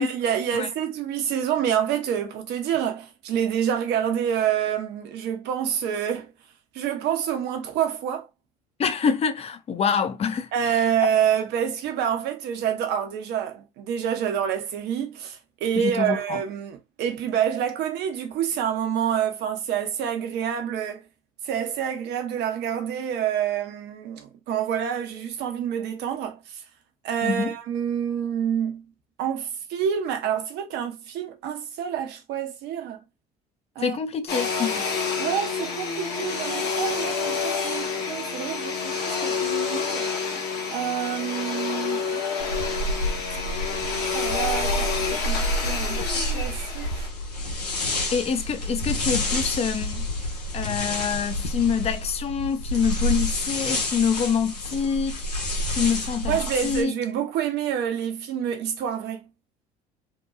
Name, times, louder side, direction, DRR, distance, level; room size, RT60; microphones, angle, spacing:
voice 1, 0.0-6.3 6.7-8.3 10.5-21.0 21.4-26.6 27.0-28.8 29.2-33.0 33.8-34.0 35.2-40.1 40.7-42.1 44.1-47.1 56.3-59.2, right 9 dB, 60° right, 0.8 m, -27 dB
voice 2, 8.8-10.9 15.8-16.4 27.2-27.5 33.8-34.8 48.1-50.1 50.5-55.2 55.7-56.9, left 6 dB, 30° left, 0.5 m, -26 dB
Domestic sounds home sounds, 34.3-47.1, left 5 dB, 55° left, 1.1 m, -28 dB
sound 1, 42.4-56.8, left 1 dB, 90° left, 0.7 m, -29 dB
2.8 x 2.2 x 2.5 m
hypercardioid pair, 60°, 20 cm